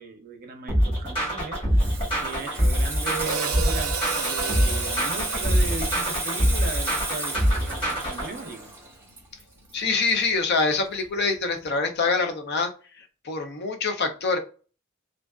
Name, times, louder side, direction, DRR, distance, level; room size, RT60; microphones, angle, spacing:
voice 1, 0.0-8.7, right 4 dB, 45° right, 0.6 m, -37 dB
sound 1, 0.7-8.3, equal, 25° left, 1.4 m, -24 dB
Water tap faucet / Sink (filling or washing), 1.4-10.7 11.0-11.3, right 2 dB, 10° right, 0.8 m, -33 dB
Hi-hat, 3.3-7.5, right 7 dB, 90° right, 0.4 m, -34 dB
voice 2, 9.7-12.7 13.0-14.4, left 4 dB, 55° left, 0.5 m, -25 dB
2.4 x 2.4 x 2.2 m
head